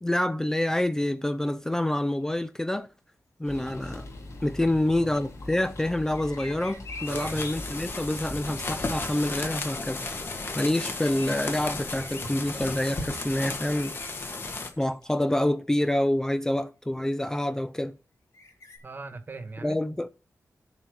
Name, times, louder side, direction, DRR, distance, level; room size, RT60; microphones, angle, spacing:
voice 1, 0.0-2.9 3.4-4.1 4.4-10.0 10.6-14.0 14.8-18.0 19.6-20.1, left 1 dB, 10° left, 0.4 m, -27 dB
sound 1, 3.4-9.2, left 1 dB, 65° left, 3.8 m, -42 dB
voice 2, 4.6-5.1 7.1-7.5 18.8-19.8, right 4 dB, 40° right, 1.3 m, -40 dB
sound 2, 6.1-7.6 10.7-11.3 11.7-12.2 12.7-14.1 14.6-15.1 15.8-15.9 18.3-18.8, left 4 dB, 80° left, 4.1 m, -44 dB
sound 3, 7.0-14.7, left 3 dB, 45° left, 1.9 m, -34 dB
10.5 x 4.4 x 7.5 m
wide cardioid pair, 170°, 5 cm